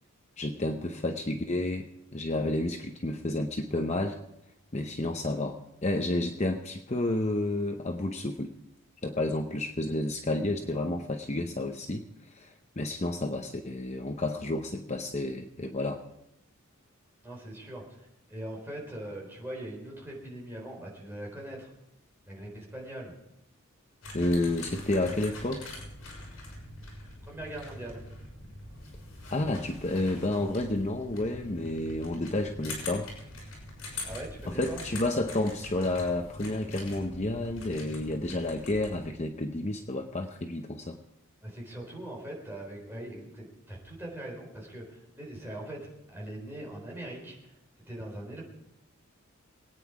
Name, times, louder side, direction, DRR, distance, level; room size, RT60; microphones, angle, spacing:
voice 1, 0.4-1.9 2.1-4.2 4.7-8.5 9.0-16.0 24.1-25.8 29.3-33.1 34.5-41.0, left 2 dB, 30° left, 5 dB, 0.8 m, -30 dB
voice 2, 17.2-21.7 22.2-23.1 27.2-28.0 34.0-34.8 41.4-47.6 47.9-48.4, right 1 dB, 10° right, -2 dB, 4.1 m, -41 dB
sound 1, 24.0-39.0, left 2 dB, 75° left, 6.7 m, -43 dB
23.5 x 9.4 x 4.8 m, 0.84 s
head